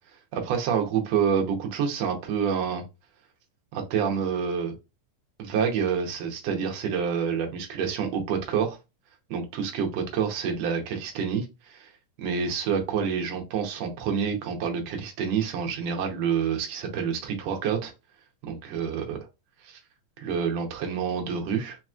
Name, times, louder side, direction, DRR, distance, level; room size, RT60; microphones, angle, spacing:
voice 1, 0.3-2.8 3.7-4.8 5.4-8.8 9.3-11.9 12.2-17.9 18.4-19.2 19.6-19.8 20.2-21.8, right 7 dB, 65° right, 3 dB, 1.8 m, -28 dB
4.9 x 2.9 x 2.4 m, 0.25 s
omnidirectional pair, 3.7 m